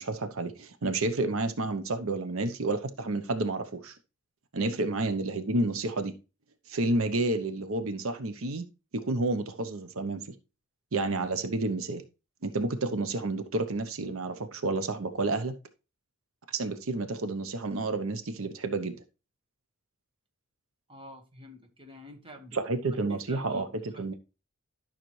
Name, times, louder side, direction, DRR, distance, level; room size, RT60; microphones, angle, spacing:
voice 1, 0.0-4.0 4.5-6.1 6.7-8.7 8.9-10.4 10.9-12.0 12.4-15.5 16.5-18.9 22.5-23.7 24.0-24.1, right 2 dB, 70° right, 0.8 m, -30 dB
voice 2, 20.9-22.6 22.9-24.1, equal, 25° right, 1.4 m, -48 dB
12.0 x 5.8 x 3.2 m
head